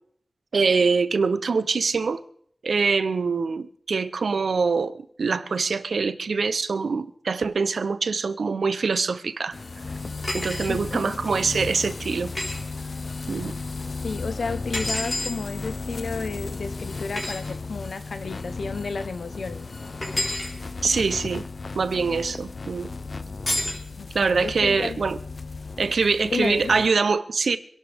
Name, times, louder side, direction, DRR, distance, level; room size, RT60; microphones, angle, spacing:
voice 1, 0.5-2.2 2.6-9.6 10.3-12.3 13.3-13.5 20.8-21.4 21.7-22.9 24.1-25.2 25.8-27.6, right 4 dB, 80° right, 0.7 m, -24 dB
sound 1, 9.5-26.9, left 3 dB, 50° left, 0.6 m, -35 dB
sound 2, 10.2-10.7 12.3-12.6 14.7-15.4 17.1-17.4 20.0-20.5 23.5-23.8, left 1 dB, 30° left, 4.3 m, -28 dB
voice 2, 10.7-11.2 14.0-19.7 24.0-25.0 26.2-26.8, left 4 dB, 75° left, 1.0 m, -32 dB
26.0 x 11.0 x 3.5 m
wide cardioid pair, 100°, 0 cm